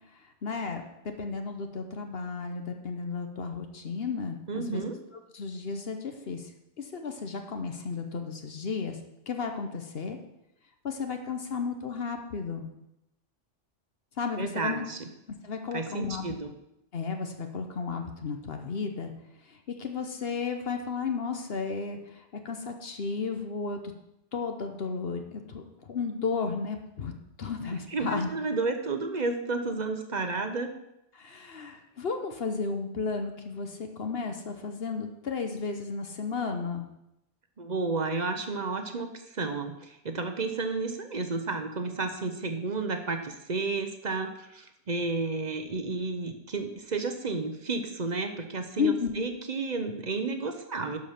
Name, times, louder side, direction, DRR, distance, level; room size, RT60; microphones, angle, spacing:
voice 1, 0.4-0.8 1.2-4.8 5.3-6.5 6.8-9.0 9.3-10.2 10.8-12.7 14.2-14.8 15.4-16.3 16.9-19.1 19.5-23.8 24.3-27.1 27.4-28.3 31.1-36.9 48.8-49.1, left 5 dB, 60° left, 5 dB, 1.1 m, -33 dB
voice 2, 4.5-5.0 14.4-15.0 15.7-16.5 27.9-30.7 37.6-51.0, right 3 dB, 40° right, 6 dB, 0.9 m, -32 dB
12.0 x 5.2 x 5.8 m, 0.85 s
omnidirectional pair, 1.2 m